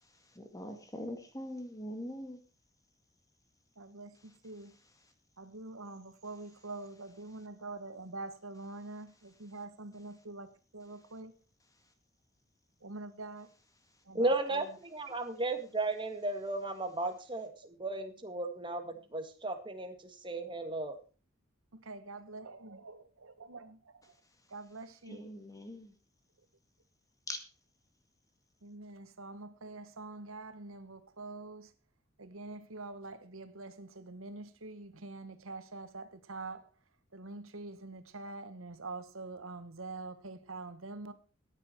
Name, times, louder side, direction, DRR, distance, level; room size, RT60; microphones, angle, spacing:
voice 1, 0.4-2.4 25.1-25.9 27.3-27.4, left 1 dB, 15° left, 1.9 m, -42 dB
voice 2, 3.8-4.8 5.4-11.4 12.8-13.5 14.0-14.7 15.1-15.2 21.7-23.8 24.5-25.3 28.6-31.7 32.2-36.7 37.1-41.1, right 3 dB, 85° right, 1.3 m, -45 dB
voice 3, 14.1-19.9 20.2-21.0, right 2 dB, 25° right, 1.9 m, -34 dB
14.0 x 9.9 x 4.4 m
head